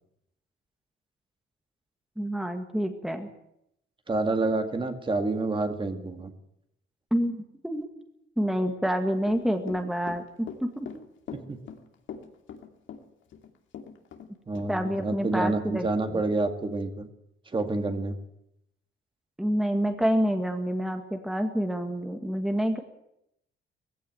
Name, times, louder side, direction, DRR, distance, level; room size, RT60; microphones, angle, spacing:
voice 1, 2.2-3.3 7.1-7.9 8.4-10.7 14.7-16.2 19.4-22.8, equal, ahead, 5 dB, 1.8 m, -28 dB
voice 2, 4.1-6.3 11.5-11.6 14.5-17.1 17.5-18.2, right 2 dB, 25° right, 6 dB, 2.1 m, -28 dB
Run / Walk footsteps, 9.2-14.3 14.6-14.7, left 7 dB, 75° left, 2.8 m, -41 dB
19.5 x 16.0 x 9.2 m, 0.80 s
cardioid pair, 125°, 20 cm